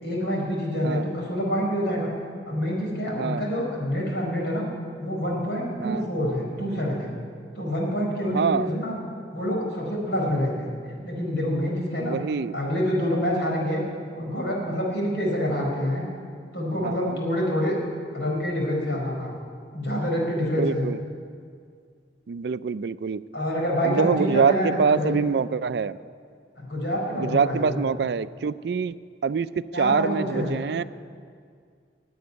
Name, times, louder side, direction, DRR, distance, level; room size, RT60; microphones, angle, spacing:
voice 1, 0.0-2.1 2.5-4.7 5.0-7.1 7.6-9.0 9.3-10.7 11.0-12.2 12.5-13.8 14.2-16.1 16.5-17.8 18.1-19.3 19.7-20.9 23.3-25.2 26.6-27.7 29.7-30.6, equal, 75° left, -2 dB, 4.5 m, -26 dB
voice 2, 3.2-3.5 5.8-6.1 8.3-8.7 12.0-12.6 16.8-17.2 20.6-21.0 22.3-23.2 23.8-26.0 27.2-28.9 29.2-30.8, right 5 dB, 65° right, 15 dB, 0.4 m, -25 dB
16.5 x 7.9 x 9.6 m, 2.1 s
head